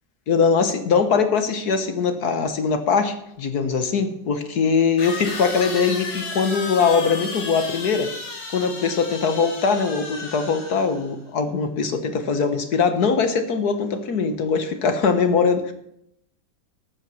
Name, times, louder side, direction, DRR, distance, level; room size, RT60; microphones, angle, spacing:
voice 1, 0.3-8.1 8.5-15.7, left 5 dB, 60° left, 8 dB, 1.7 m, -21 dB
sound 1, 3.4-3.5 5.0-11.1, left 4 dB, 80° left, 3.0 m, -33 dB
13.5 x 9.1 x 7.0 m, 0.77 s
omnidirectional pair, 1.9 m